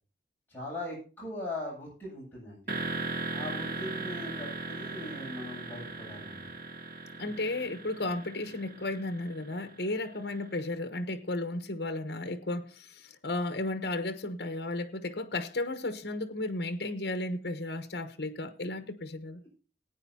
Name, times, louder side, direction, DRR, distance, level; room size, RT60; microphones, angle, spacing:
voice 1, 0.5-2.6 3.3-6.4 7.2-7.3, left 1 dB, 10° left, 7.9 m, -40 dB
sound 1, 2.7-10.5, right 2 dB, 55° right, 1.8 m, -38 dB
voice 2, 7.2-19.4, left 2 dB, 65° left, 1.1 m, -34 dB
19.0 x 9.3 x 2.8 m
head